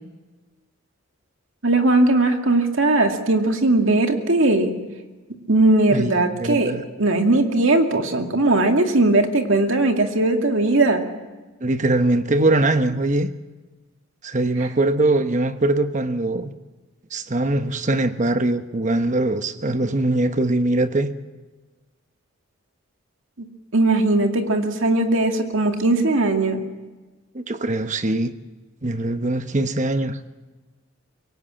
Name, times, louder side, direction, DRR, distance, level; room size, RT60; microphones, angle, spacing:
voice 1, 1.6-4.7 5.5-6.7 7.0-11.0 14.6-14.7 23.7-26.6, right 2 dB, 60° right, 2.3 m, -19 dB
voice 2, 6.4-6.8 11.6-13.3 14.2-16.5 17.1-21.1 27.3-28.3 28.8-30.2, right 2 dB, 35° right, 1.0 m, -21 dB
23.5 x 18.0 x 8.9 m
head